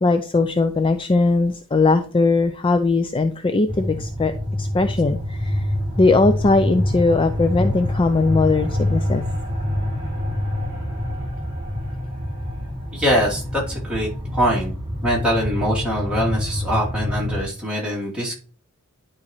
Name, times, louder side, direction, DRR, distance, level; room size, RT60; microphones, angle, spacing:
voice 1, 0.0-4.3 4.6-5.6 6.0-9.2, left 3 dB, 25° left, 8 dB, 0.4 m, -19 dB
sound 1, 3.7-17.4, left 1 dB, 25° right, 3.2 m, -26 dB
voice 2, 12.9-14.7 15.0-18.4, equal, 5° right, -6 dB, 2.9 m, -23 dB
11.0 x 4.2 x 3.1 m, 0.39 s
head